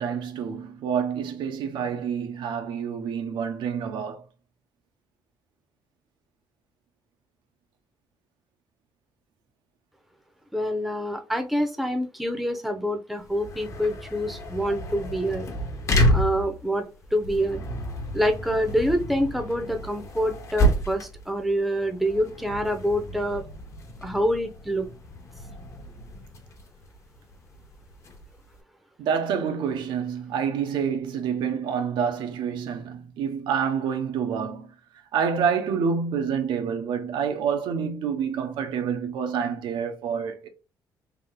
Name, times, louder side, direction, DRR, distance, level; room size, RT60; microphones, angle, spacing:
voice 1, 0.0-4.2 29.0-34.7 35.1-40.5, right 7 dB, 90° right, 0.8 m, -27 dB
voice 2, 10.5-15.5 16.1-16.9 17.1-17.6 18.1-23.4 24.0-24.9, equal, ahead, 0.7 m, -26 dB
sound 1, 13.2-28.6, equal, 40° left, 0.9 m, -30 dB
3.5 x 2.7 x 3.7 m
cardioid pair, 135°, 8 cm